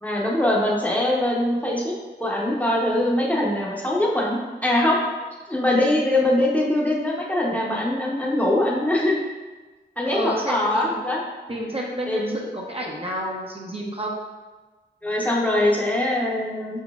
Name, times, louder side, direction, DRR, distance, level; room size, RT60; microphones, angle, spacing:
voice 1, 0.0-1.9 2.2-5.0 5.5-9.2 10.0-11.2 12.1-12.3 15.0-16.8, left 1 dB, 10° left, -4 dB, 0.9 m, -22 dB
voice 2, 10.0-11.0 11.5-14.2, right 1 dB, 30° right, -3 dB, 0.7 m, -30 dB
4.8 x 4.1 x 2.4 m, 1.3 s
cardioid pair, 45°, 19 cm